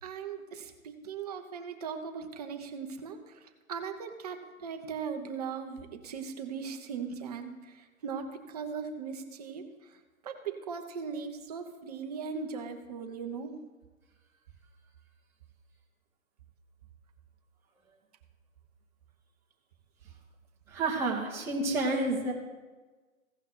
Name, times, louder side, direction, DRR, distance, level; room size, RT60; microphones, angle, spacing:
voice 1, 0.0-13.5, right 6 dB, 30° right, 5 dB, 1.0 m, -39 dB
voice 2, 20.7-22.3, right 2 dB, 5° right, -6 dB, 1.7 m, -29 dB
16.0 x 5.7 x 4.4 m, 1.3 s
hypercardioid pair, 155°, 42 cm